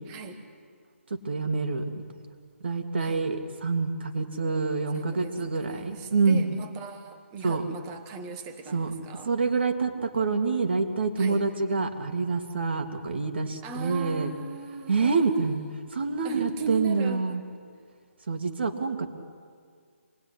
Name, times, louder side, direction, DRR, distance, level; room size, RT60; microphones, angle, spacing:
voice 1, 0.1-0.4 3.0-3.3 4.9-9.3 11.2-11.4 13.6-15.3 16.2-17.3, right 4 dB, 10° right, 7 dB, 1.3 m, -39 dB
voice 2, 1.1-2.0 2.6-6.5 7.4-7.6 8.7-8.9 9.2-14.3 14.9-15.6 15.9-17.4 18.3-19.1, right 4 dB, 50° right, 5 dB, 2.9 m, -27 dB
27.0 x 20.5 x 10.0 m, 2.1 s
hypercardioid pair, 175°, 7 cm